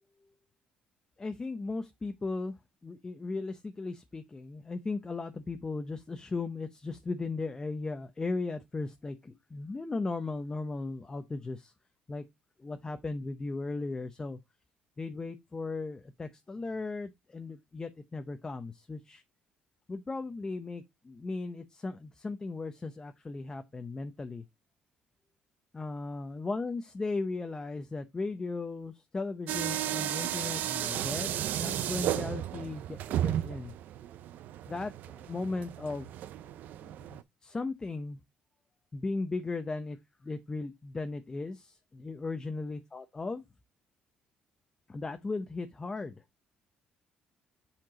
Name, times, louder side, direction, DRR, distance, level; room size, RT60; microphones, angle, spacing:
voice 1, 1.2-11.7 12.1-12.2 12.6-14.4 15.0-19.2 19.9-24.4 25.7-33.7 34.7-36.1 36.8-38.2 38.9-40.0 40.2-43.4 44.9-46.2, left 3 dB, 25° left, 0.8 m, -37 dB
sound 1, 29.5-37.2, right 12 dB, 70° right, 0.5 m, -34 dB
7.6 x 4.5 x 3.8 m
cardioid pair, 95°, 3 cm